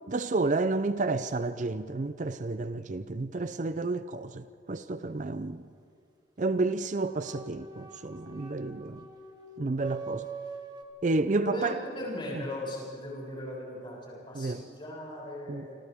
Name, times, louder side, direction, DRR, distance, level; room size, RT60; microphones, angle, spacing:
voice 1, 0.1-5.6 6.4-9.0 9.6-10.3 11.0-11.8 14.3-14.6 15.5-15.7, right 3 dB, 45° right, 0.5 m, -30 dB
sound 1, 7.0-10.8, right 4 dB, 25° right, 1.7 m, -43 dB
voice 2, 11.3-15.8, left 1 dB, 30° left, 7.5 m, -38 dB
28.0 x 26.0 x 3.6 m
head